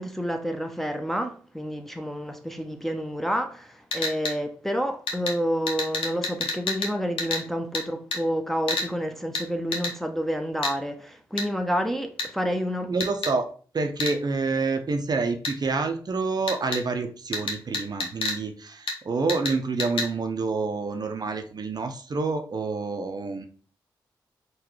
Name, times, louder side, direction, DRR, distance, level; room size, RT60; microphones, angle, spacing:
voice 1, 0.0-12.9, equal, 5° left, 0.5 m, -29 dB
sound 1, 3.9-4.3 5.1-5.3 5.7-6.9 7.2-7.4 7.7-7.8 8.1-8.2 8.7-8.9 9.3-9.4 9.7-9.9 10.6-10.7 11.4-11.5 12.2-12.3 13.0-13.3 14.0-14.1 15.4-15.5 16.5-16.8 17.3-18.4 18.9-19.0 19.3-19.5 19.8-20.1, left 3 dB, 75° left, 0.8 m, -28 dB
voice 2, 12.9-13.5 13.7-23.5, right 4 dB, 45° right, 0.5 m, -28 dB
3.7 x 2.3 x 3.1 m
supercardioid pair, 45°, 9 cm